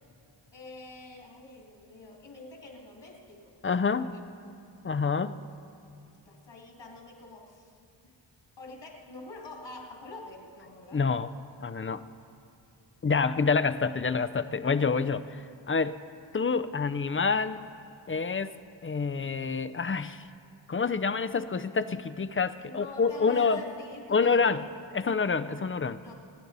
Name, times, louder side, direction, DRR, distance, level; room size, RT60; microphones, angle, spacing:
voice 1, 0.5-3.5 6.3-7.7 8.6-11.0 22.6-24.6 26.0-26.1, left 2 dB, 70° left, 0 dB, 2.6 m, -45 dB
voice 2, 3.6-4.1 4.8-5.3 10.9-11.3 11.6-12.0 13.0-16.0 16.3-17.6 18.1-18.5 18.8-20.3 20.7-23.6 24.1-24.6 24.9-26.0, left 5 dB, 30° left, 13 dB, 0.5 m, -27 dB
26.5 x 9.9 x 4.0 m, 2.6 s
cardioid pair, 65°, 46 cm